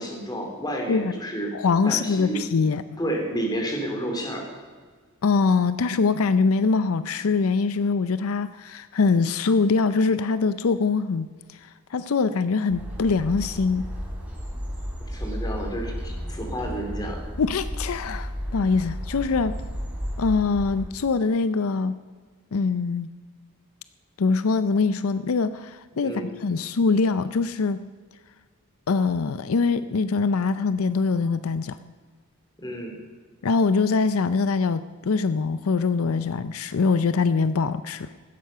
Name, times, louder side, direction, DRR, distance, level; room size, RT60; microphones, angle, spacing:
voice 1, 0.0-1.5 1.8-2.4 3.0-4.5 15.1-17.2 26.0-26.4 32.6-33.0, right 1 dB, 20° left, 2 dB, 3.0 m, -30 dB
voice 2, 1.5-3.0 5.2-13.8 17.4-19.5 20.2-21.9 22.5-23.1 24.2-27.8 28.9-31.8 33.4-38.1, left 4 dB, 80° left, 13 dB, 0.5 m, -23 dB
sound 1, 12.7-20.8, equal, 5° right, 3.8 m, -33 dB
16.0 x 12.5 x 5.6 m, 1.5 s
head